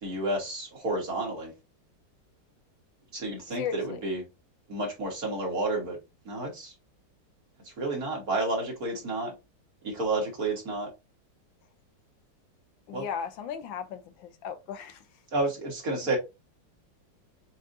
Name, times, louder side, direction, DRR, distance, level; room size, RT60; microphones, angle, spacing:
voice 1, 0.0-1.5 3.1-4.2 4.7-6.0 6.3-6.7 7.8-9.3 9.8-10.9 12.9-13.0 15.3-16.2, right 2 dB, 50° right, 2.1 m, -30 dB
voice 2, 3.6-4.0 12.9-15.0, left 7 dB, 85° left, 1.4 m, -36 dB
7.1 x 2.5 x 2.6 m
omnidirectional pair, 2.0 m